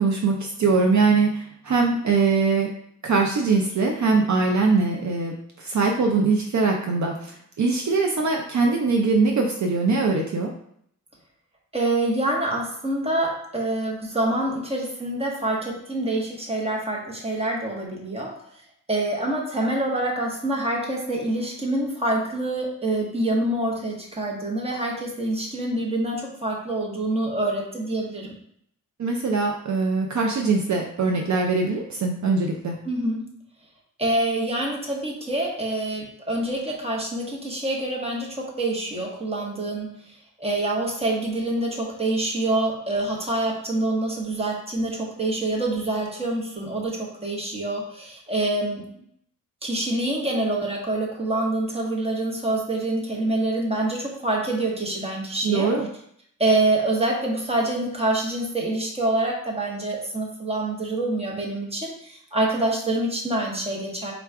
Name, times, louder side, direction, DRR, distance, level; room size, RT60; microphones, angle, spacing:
voice 1, 0.0-2.7 3.0-7.3 7.6-10.5 29.0-32.8 55.4-55.9, right 4 dB, 60° right, 1 dB, 0.5 m, -22 dB
voice 2, 11.7-18.3 18.9-28.3 32.8-33.2 34.0-39.9 40.4-48.8 49.6-55.7 56.4-64.1, right 2 dB, 20° right, -2 dB, 1.0 m, -26 dB
3.7 x 2.3 x 4.5 m, 0.69 s
wide cardioid pair, 125°, 33 cm